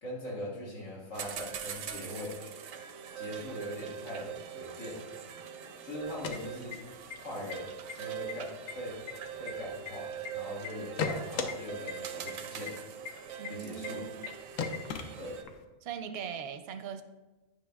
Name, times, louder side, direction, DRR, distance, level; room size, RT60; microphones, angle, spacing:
voice 1, 0.0-2.4 3.2-5.0 5.8-6.8 7.2-7.7 8.0-9.0 9.4-12.8 13.5-14.0 15.2-15.4, left 1 dB, 70° left, -5 dB, 2.1 m, -41 dB
sound 1, 1.1-15.4, right 8 dB, 90° right, 1.0 m, -42 dB
sound 2, 6.0-7.1 7.5-7.6 7.9-8.3 8.7-10.3 10.6-11.5 11.9-12.0 12.3-12.4 12.7-12.8 13.1-13.2 13.4-13.5 13.8-13.9 14.2-14.3 14.6-15.6, left 5 dB, 90° left, 1.0 m, -36 dB
voice 2, 13.4-14.1 15.8-17.0, right 7 dB, 60° right, 8 dB, 0.7 m, -40 dB
9.4 x 5.5 x 2.3 m, 1.2 s
omnidirectional pair, 1.3 m